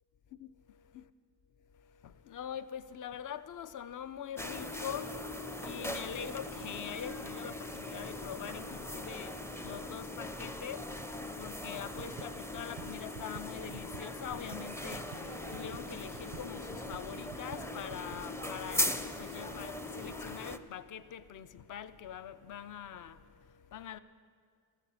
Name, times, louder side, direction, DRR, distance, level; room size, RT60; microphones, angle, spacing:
voice 1, 1.7-24.0, left 9 dB, 50° left, 0.6 m, -44 dB
sound 1, 4.4-20.6, left 1 dB, 5° left, 0.5 m, -40 dB
sound 2, 12.0-18.2, right 14 dB, 90° right, 0.5 m, -51 dB
sound 3, 15.1-22.0, left 4 dB, 35° left, 1.1 m, -61 dB
15.5 x 13.5 x 5.7 m
cardioid pair, 120°, 40 cm